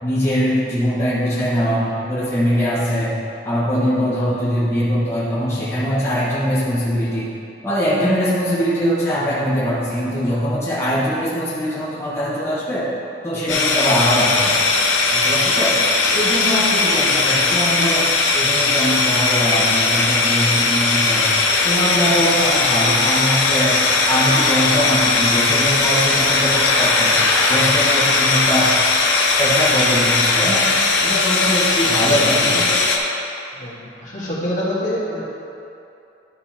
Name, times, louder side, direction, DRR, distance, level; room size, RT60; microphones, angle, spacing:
voice 1, 0.0-3.2 3.4-7.3 7.6-12.9 13.2-14.6 15.1-15.8 16.1-21.3 21.6-28.7 29.4-30.7 31.0-32.5, equal, 15° left, -11 dB, 1.6 m, -22 dB
sound 1, 13.5-33.0, left 3 dB, 80° left, 1.0 m, -18 dB
voice 2, 32.0-32.8 33.6-35.2, equal, 45° left, -8 dB, 1.9 m, -26 dB
12.0 x 4.2 x 4.4 m, 2.7 s
head